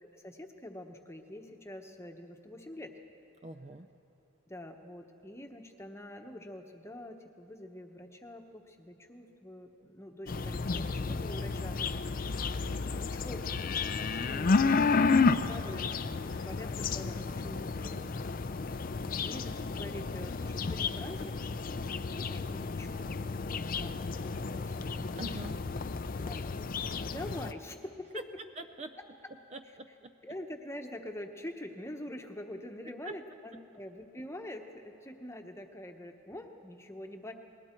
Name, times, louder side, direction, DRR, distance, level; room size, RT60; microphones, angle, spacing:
voice 1, 0.0-2.9 4.5-11.9 12.2-12.4 12.8-13.4 14.1-16.0 16.2-18.0 19.2-21.4 22.0-25.0 25.3-25.4 26.2-28.2 30.2-37.3, left 1 dB, 10° left, 4 dB, 1.0 m, -45 dB
voice 2, 3.4-3.9 17.4-18.2 25.2-25.6 28.1-28.2 28.6-28.9 29.5-30.1 33.0-33.1, right 2 dB, 30° right, 8 dB, 0.5 m, -44 dB
sound 1, 10.3-27.5, left 4 dB, 40° left, 0.4 m, -32 dB
sound 2, 11.7-17.2, left 3 dB, 85° left, 1.2 m, -55 dB
30.0 x 20.5 x 4.5 m, 2.7 s
head